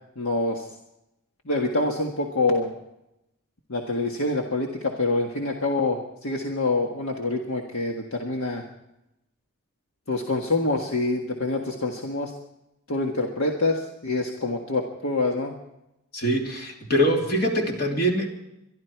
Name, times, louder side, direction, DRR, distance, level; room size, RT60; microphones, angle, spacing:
voice 1, 0.2-0.7 1.4-2.7 3.7-8.6 10.1-12.3 12.9-15.5, left 2 dB, 65° left, 1 dB, 1.6 m, -26 dB
voice 2, 16.1-18.3, equal, 45° left, 1 dB, 3.0 m, -23 dB
24.0 x 12.0 x 4.6 m, 0.87 s
head